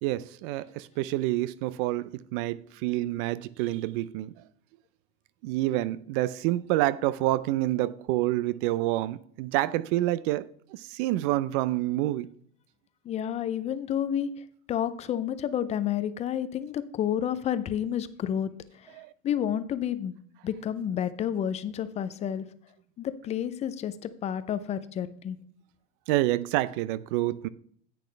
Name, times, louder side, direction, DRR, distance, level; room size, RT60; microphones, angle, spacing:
voice 1, 0.0-4.3 5.4-10.4 10.7-12.3 19.0-19.1 26.1-27.5, right 16 dB, 60° right, 0.6 m, -28 dB
voice 2, 13.0-14.3 14.7-19.0 19.2-20.1 20.4-22.5 23.0-25.4, left 9 dB, 20° left, 0.4 m, -30 dB
10.5 x 8.5 x 3.3 m
supercardioid pair, 150°, 31 cm